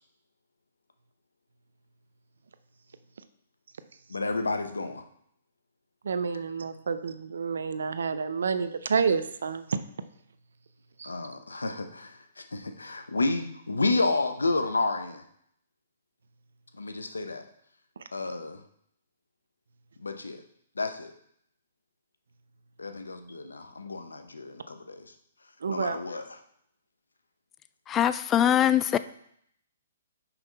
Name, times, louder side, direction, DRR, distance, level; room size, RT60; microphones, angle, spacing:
voice 1, 4.1-5.0 11.0-15.2 16.8-17.4 18.1-18.6 20.0-20.4 20.8-21.1 22.8-25.0 25.7-26.3, left 3 dB, 85° left, 7 dB, 0.7 m, -30 dB
voice 2, 6.0-9.8 11.0-11.1 25.6-26.0, right 5 dB, 70° right, 12 dB, 0.5 m, -29 dB
voice 3, 27.9-29.0, left 10 dB, 20° left, 14 dB, 0.3 m, -22 dB
5.8 x 5.4 x 4.0 m, 0.69 s
figure-of-eight pair, 125°, 0 cm